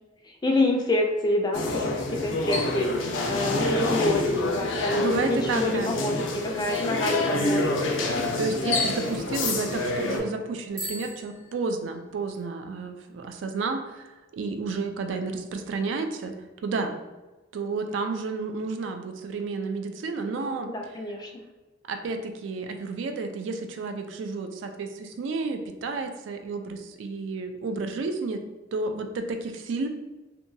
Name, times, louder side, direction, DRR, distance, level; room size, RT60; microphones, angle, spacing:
voice 1, 0.4-7.8 20.3-21.3, left 1 dB, 20° left, 2 dB, 0.3 m, -27 dB
sound 1, 1.5-10.2, left 2 dB, 90° left, 0.5 m, -27 dB
voice 2, 4.9-5.9 8.4-14.1 14.3-16.4 16.6-17.0 17.5-20.7 21.9-28.4 28.7-29.9, right 3 dB, 75° right, 5 dB, 0.3 m, -31 dB
Bicycle bell, 10.7-12.4, right 1 dB, 50° right, 1.2 m, -40 dB
2.8 x 2.2 x 2.6 m, 1.2 s
head